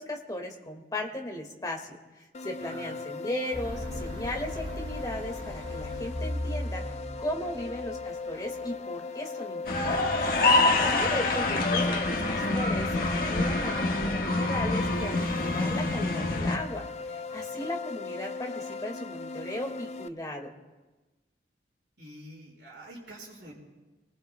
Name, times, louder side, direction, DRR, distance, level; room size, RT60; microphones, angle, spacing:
voice 1, 0.0-6.9 7.2-10.2 10.8-20.5, left 1 dB, 20° left, 1 dB, 1.9 m, -36 dB
sound 1, 2.3-20.1, left 4 dB, 40° left, 0.5 m, -39 dB
voice 2, 2.6-3.0 7.4-7.6 10.4-10.8 11.2-11.4 17.1-17.6 22.0-23.5, right 1 dB, 75° right, -3 dB, 5.3 m, -49 dB
sound 2, 3.5-8.6, left 1 dB, 30° right, 6.9 m, -37 dB
sound 3, 9.7-16.6, left 2 dB, 55° left, 1.5 m, -26 dB
28.5 x 19.0 x 2.2 m, 1.2 s
head